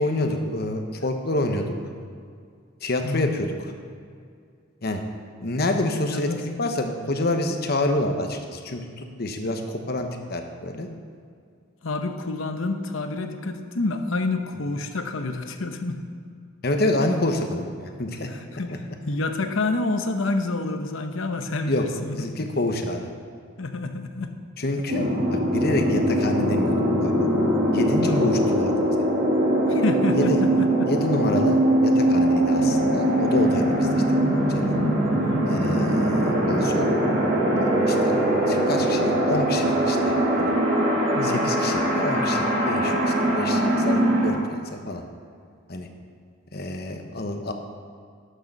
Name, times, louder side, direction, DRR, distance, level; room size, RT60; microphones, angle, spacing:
voice 1, 0.0-1.7 2.8-3.7 4.8-5.0 5.4-10.9 16.6-18.3 18.7-18.8 21.7-21.8 22.1-23.1 24.6-25.0 25.5-26.7 27.0-27.1 27.7-28.7 30.1-30.4 30.9-34.0 34.5-34.7 35.5-36.9 37.6-38.1 38.5-40.5 41.2-45.0 45.7-45.9 46.5-47.5, left 1 dB, 50° left, 5 dB, 1.1 m, -27 dB
voice 2, 3.0-3.4 6.0-6.5 11.8-16.0 18.3-22.5 23.6-24.3 28.0-28.4 29.7-30.9 32.5-32.9 35.2-35.5 41.1-41.5, left 2 dB, 75° left, 7 dB, 0.9 m, -28 dB
sound 1, 24.9-44.3, right 1 dB, 45° right, 2.2 m, -22 dB
11.5 x 6.8 x 6.6 m, 2.2 s
head